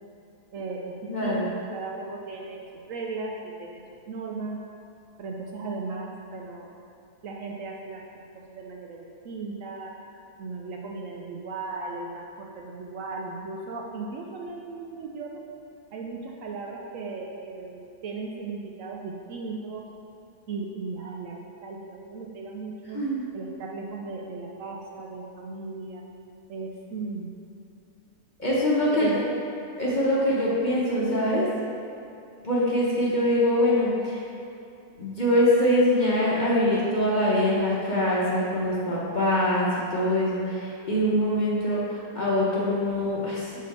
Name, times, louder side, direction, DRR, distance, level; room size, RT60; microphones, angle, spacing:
voice 1, 0.5-2.6 2.9-4.6 5.2-6.7 7.2-8.2 8.5-9.9 10.4-15.4 15.9-19.8 20.5-23.0 23.3-26.0 26.5-27.3 28.9-29.2 33.0-33.2, right 3 dB, 70° right, -1 dB, 0.9 m, -36 dB
voice 2, 1.1-1.4 22.9-23.2 28.4-29.1 29.8-31.5 32.4-34.2 35.0-43.7, left 1 dB, 35° left, -7 dB, 0.9 m, -24 dB
6.1 x 4.1 x 4.2 m, 2.7 s
omnidirectional pair, 1.6 m